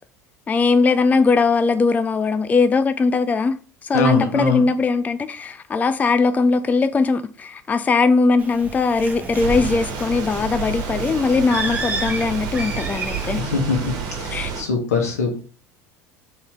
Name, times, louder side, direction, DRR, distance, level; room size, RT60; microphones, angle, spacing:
voice 1, 0.5-3.5 3.8-13.4 14.3-14.5, left 4 dB, 20° left, 0.3 m, -20 dB
voice 2, 3.9-4.6 13.4-15.4, left 4 dB, 80° left, 1.2 m, -22 dB
Bird, 8.4-13.4, right 2 dB, 20° right, 1.2 m, -31 dB
sound 1, 9.4-14.6, right 5 dB, 50° right, 1.3 m, -30 dB
4.4 x 3.4 x 3.5 m
figure-of-eight pair, 70°, 8 cm